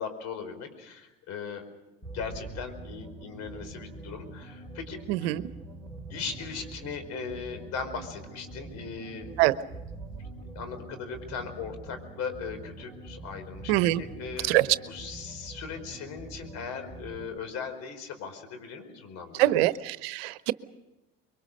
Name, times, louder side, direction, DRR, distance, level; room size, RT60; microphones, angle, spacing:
voice 1, 0.0-1.6 2.1-5.3 6.1-9.3 10.5-19.5, left 5 dB, 60° left, 7 dB, 4.9 m, -38 dB
sound 1, 2.0-17.4, right 2 dB, 15° left, 6.1 m, -44 dB
voice 2, 5.1-5.4 9.4-9.5 13.7-14.0 14.5-14.6 19.4-20.5, right 17 dB, 80° right, 15 dB, 0.9 m, -23 dB
24.5 x 23.0 x 6.5 m, 1.0 s
supercardioid pair, 80°, 30 cm